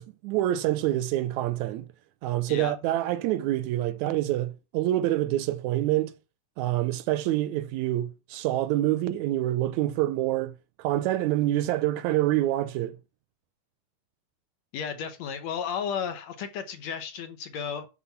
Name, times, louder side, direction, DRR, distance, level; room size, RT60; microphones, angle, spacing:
voice 1, 0.0-1.9 2.2-6.1 6.6-13.0, right 14 dB, 75° right, 1.9 m, -26 dB
voice 2, 14.7-17.9, left 7 dB, 65° left, 2.2 m, -33 dB
11.0 x 4.6 x 5.8 m
omnidirectional pair, 3.5 m